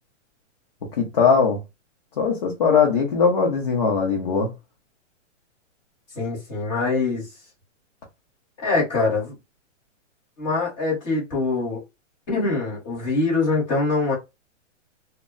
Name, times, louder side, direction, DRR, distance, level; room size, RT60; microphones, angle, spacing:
voice 1, 1.0-1.6 2.2-4.5, left 5 dB, 35° left, 0.5 m, -20 dB
voice 2, 6.2-7.3 8.6-9.3 10.4-11.8 12.3-14.2, left 3 dB, 20° left, 1.1 m, -23 dB
2.1 x 2.0 x 3.6 m
hypercardioid pair, 170°, 38 cm